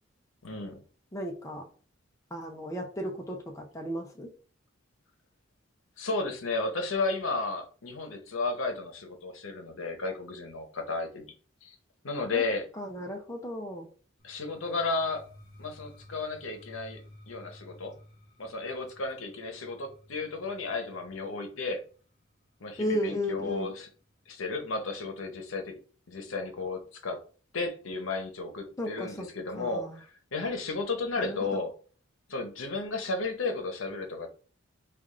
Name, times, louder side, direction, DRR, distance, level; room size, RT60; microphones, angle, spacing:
voice 1, 0.4-0.8 6.0-11.3 11.6-11.8 12.0-12.6 14.2-15.2 15.6-17.9 18.4-21.8 22.6-23.9 24.3-25.8 26.1-27.2 27.5-31.7 32.3-34.3, left 3 dB, 80° left, 4 dB, 0.8 m, -33 dB
voice 2, 1.1-1.7 2.3-4.3 12.3-12.5 12.8-13.9 22.8-23.7 28.8-29.3 29.6-30.0 31.2-31.6, equal, 15° left, 1 dB, 0.5 m, -34 dB
sound 1, 14.2-24.0, left 1 dB, 65° left, 1.1 m, -55 dB
3.4 x 2.4 x 3.6 m, 0.39 s
head